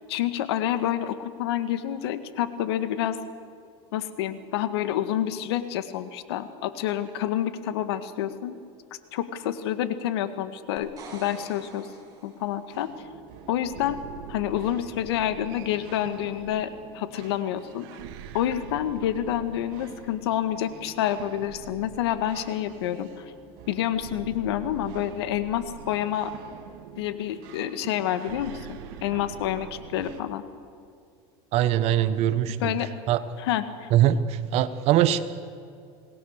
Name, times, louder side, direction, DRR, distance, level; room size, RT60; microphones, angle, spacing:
voice 1, 0.1-3.2 3.9-8.6 9.1-11.9 12.2-12.9 13.5-14.0 14.3-16.7 16.9-17.9 18.3-23.2 23.7-26.3 27.0-30.4 32.6-32.9 33.4-33.9, left 11 dB, 85° left, 11 dB, 1.7 m, -28 dB
sound 1, 10.8-12.7 16.4-16.5, right 4 dB, 25° right, 7.1 m, -46 dB
sound 2, 12.7-30.2, right 9 dB, 70° right, 2.1 m, -44 dB
voice 2, 31.5-32.7 33.1-33.2 33.9-35.2, right 11 dB, 50° right, 13 dB, 1.3 m, -22 dB
26.5 x 20.0 x 6.6 m, 2.4 s
supercardioid pair, 125°, 13 cm